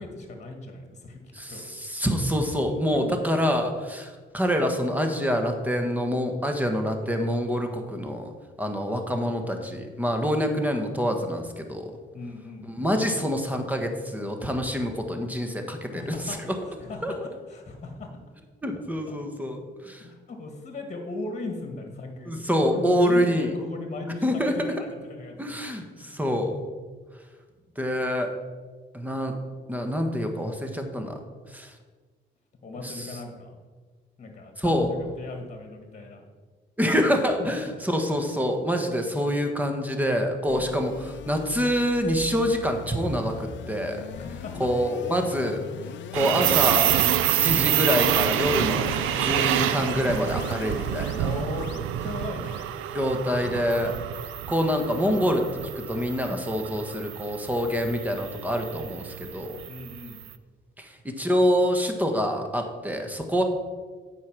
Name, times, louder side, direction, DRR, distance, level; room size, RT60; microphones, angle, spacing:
voice 1, 0.0-1.7 2.6-3.1 12.1-12.7 15.9-16.4 16.8-18.1 19.1-19.2 20.0-25.6 26.0-26.2 32.6-33.6 34.2-36.2 37.4-37.5 44.1-44.7 51.2-52.6 59.7-60.2, left 3 dB, 35° left, 4 dB, 1.8 m, -37 dB
voice 2, 1.3-8.3 8.6-11.9 12.7-16.5 17.0-17.1 18.6-20.1 22.3-23.5 24.2-24.5 25.4-26.6 27.8-28.3 28.9-29.3 29.7-31.2 31.5-31.7 32.8-33.2 34.6-34.9 36.8-44.1 44.6-45.6 46.1-47.0 47.3-51.3 52.9-54.0 54.5-55.5 55.7-59.6 60.8-63.4, equal, 10° right, 4 dB, 1.2 m, -26 dB
sound 1, 40.5-55.6, left 9 dB, 70° left, 0.5 m, -41 dB
sound 2, 46.1-60.2, right 12 dB, 85° right, 0.5 m, -27 dB
8.3 x 4.9 x 6.0 m, 1.5 s
cardioid pair, 90°, 20 cm